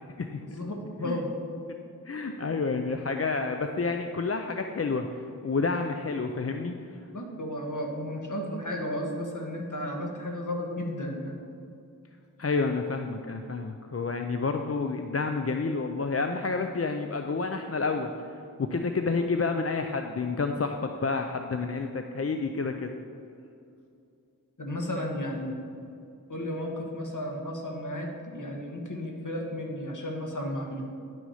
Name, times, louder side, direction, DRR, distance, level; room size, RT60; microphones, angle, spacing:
voice 1, 0.5-1.3 7.1-11.4 24.6-25.6 26.3-30.8, left 1 dB, 60° left, 1 dB, 1.6 m, -33 dB
voice 2, 2.1-5.1 5.4-6.8 12.4-18.1 18.6-22.9, left 4 dB, 45° left, 5 dB, 0.5 m, -29 dB
10.5 x 6.0 x 5.6 m, 2.6 s
wide cardioid pair, 55°, 34 cm